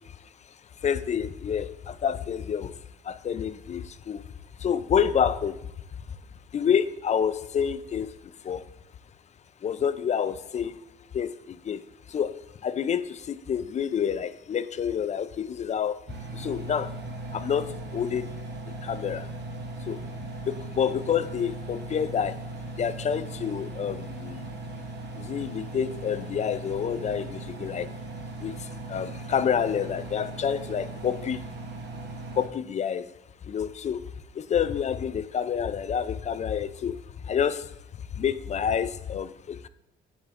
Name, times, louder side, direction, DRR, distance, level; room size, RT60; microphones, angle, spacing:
voice 1, 0.8-2.7 3.1-4.2 4.6-5.6 6.5-8.1 8.4-8.6 9.6-10.7 11.1-11.8 12.1-12.3 12.6-16.0 16.3-16.9 17.3-18.3 18.8-19.3 19.9-20.0 20.5-22.4 22.8-24.4 25.2-27.9 28.4-28.5 28.9-31.4 32.4-33.1 33.5-34.0 34.4-37.0 37.3-37.7 38.2-39.7, left 8 dB, 35° left, 14 dB, 0.4 m, -28 dB
Engine, 16.1-32.5, right 2 dB, 60° right, 1.0 m, -38 dB
9.3 x 5.0 x 2.5 m, 0.89 s
cardioid pair, 90°, 20 cm